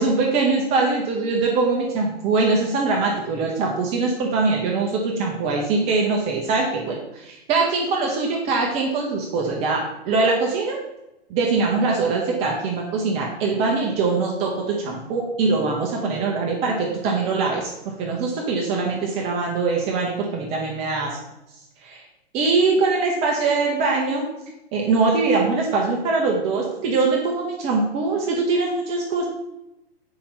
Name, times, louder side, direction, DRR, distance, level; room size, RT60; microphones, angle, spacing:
voice 1, 0.0-10.8 11.3-21.2 21.8-22.0 22.3-24.2 24.7-29.3, right 3 dB, 20° right, -1 dB, 0.7 m, -22 dB
4.7 x 4.3 x 5.2 m, 0.89 s
figure-of-eight pair, 110°, 31 cm